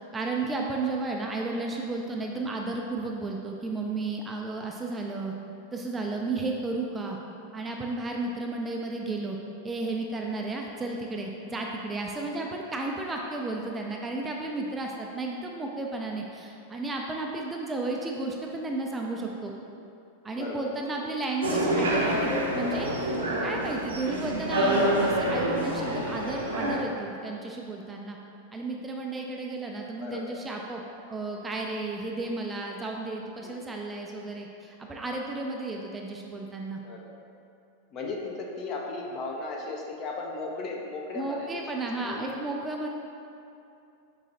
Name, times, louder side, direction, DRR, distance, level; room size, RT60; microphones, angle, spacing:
voice 1, 0.1-5.3 5.7-7.2 7.5-9.4 9.6-19.5 20.2-28.2 28.5-30.8 31.1-36.8 41.1-42.9, right 2 dB, 15° right, 0 dB, 0.3 m, -33 dB
voice 2, 20.3-20.9 30.0-30.4 33.4-33.7 36.8-37.1 37.9-41.6 42.0-42.4, left 3 dB, 35° left, 0 dB, 0.5 m, -36 dB
sound 1, 21.4-26.8, right 1 dB, 70° right, 0.6 m, -27 dB
4.9 x 3.0 x 2.7 m, 2.7 s
figure-of-eight pair, 90°, 0 cm